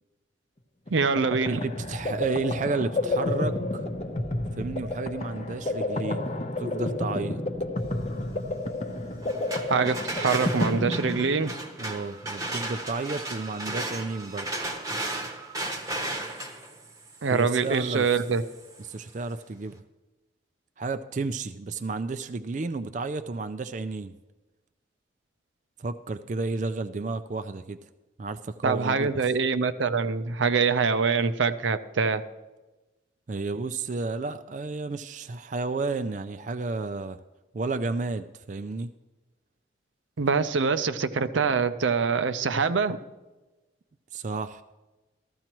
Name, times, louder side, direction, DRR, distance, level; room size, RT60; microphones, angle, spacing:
sound 1, 0.9-11.7, left 2 dB, 35° left, 0.7 m, -30 dB
voice 1, 0.9-1.6 9.7-11.5 17.2-18.4 28.6-32.2 40.2-43.0, right 5 dB, 85° right, 10 dB, 0.6 m, -24 dB
voice 2, 1.5-3.9 4.6-6.3 6.6-7.4 11.8-14.5 17.3-18.1 18.8-19.8 20.8-24.1 25.8-27.8 28.2-29.1 33.3-37.2 37.5-38.9 44.1-44.6, right 3 dB, 40° right, 10 dB, 0.4 m, -32 dB
sound 2, 9.2-19.1, right 2 dB, 20° right, 0.9 m, -35 dB
14.5 x 14.0 x 3.0 m, 1.1 s
head